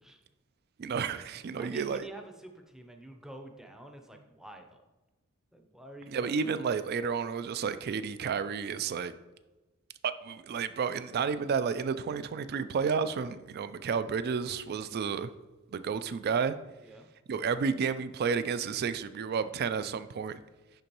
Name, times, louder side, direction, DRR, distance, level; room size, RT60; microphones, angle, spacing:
voice 1, 0.8-2.0 6.1-9.1 10.0-15.3 15.7-16.6 17.3-20.4, right 6 dB, 50° right, 13 dB, 0.3 m, -31 dB
voice 2, 1.6-4.8 5.5-6.4 16.8-17.1, right 1 dB, ahead, 4 dB, 0.6 m, -48 dB
10.5 x 3.8 x 3.0 m, 1.1 s
head